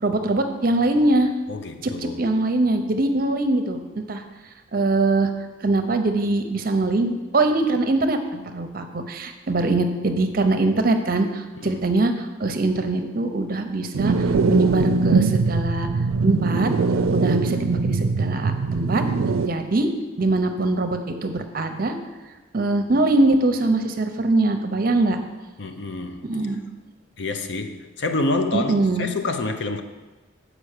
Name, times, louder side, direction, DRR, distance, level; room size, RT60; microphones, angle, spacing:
voice 1, 0.0-1.3 1.8-3.8 4.1-4.2 4.7-5.3 5.6-14.1 14.5-15.9 16.2-16.7 17.1-19.0 19.4-19.9 20.2-22.0 22.5-25.2 26.3-26.6 28.5-29.1, right 2 dB, 45° right, 7 dB, 0.7 m, -22 dB
voice 2, 1.5-2.3 11.6-11.8 25.6-26.4 27.2-29.8, left 2 dB, 55° left, 7 dB, 0.6 m, -28 dB
sound 1, 13.9-19.5, right 4 dB, 85° right, 0.4 m, -21 dB
7.4 x 5.0 x 6.6 m, 1.2 s
head